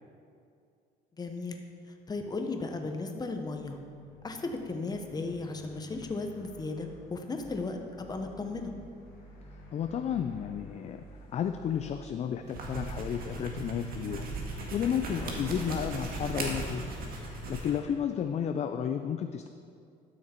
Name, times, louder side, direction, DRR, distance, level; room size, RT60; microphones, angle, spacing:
voice 1, 1.2-1.6 2.1-3.8 4.2-8.7 15.7-15.9, left 3 dB, 25° left, 4 dB, 1.0 m, -35 dB
sound 1, 3.1-13.3, left 1 dB, 85° left, 1.9 m, -53 dB
voice 2, 9.7-11.0 11.3-16.9 17.2-19.5, left 8 dB, 40° left, 7 dB, 0.4 m, -32 dB
sound 2, 12.4-17.8, right 2 dB, 60° right, 1.8 m, -37 dB
12.0 x 6.5 x 4.4 m, 2.4 s
cardioid pair, 110°, 17 cm